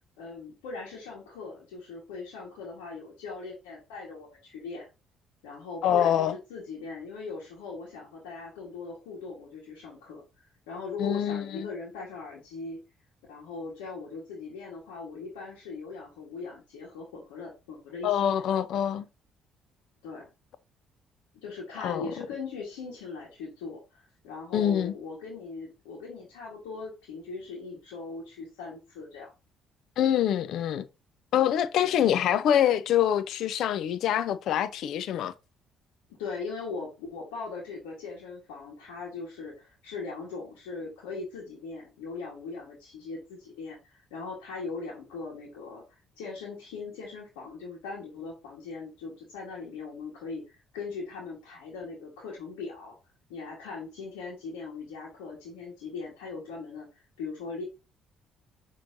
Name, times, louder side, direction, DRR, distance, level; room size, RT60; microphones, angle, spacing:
voice 1, 0.2-4.9 5.4-12.8 13.3-18.4 20.0-20.3 21.4-29.3 31.8-31.9 36.2-45.8 46.2-52.9 53.3-56.9 57.2-57.6, left 4 dB, 85° left, 1.4 m, -40 dB
voice 2, 5.8-6.3 11.0-11.7 18.0-19.1 21.8-22.1 24.5-24.9 30.0-30.9 31.3-35.3, left 10 dB, 70° left, 0.5 m, -25 dB
6.2 x 3.1 x 2.7 m
hypercardioid pair, 60°, 0 cm